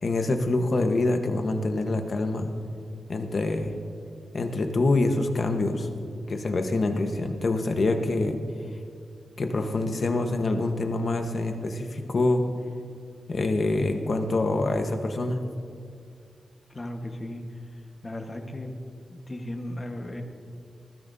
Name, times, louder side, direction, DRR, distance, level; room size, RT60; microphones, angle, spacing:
voice 1, 0.0-2.5 3.1-3.7 4.3-5.9 6.3-8.4 9.4-12.4 13.3-15.4, left 2 dB, 50° left, 5 dB, 1.2 m, -25 dB
voice 2, 16.7-17.4 17.7-18.7 19.1-20.2, left 1 dB, 30° left, 4 dB, 1.3 m, -36 dB
19.5 x 14.5 x 2.7 m, 2.4 s
wide cardioid pair, 95°, 0 cm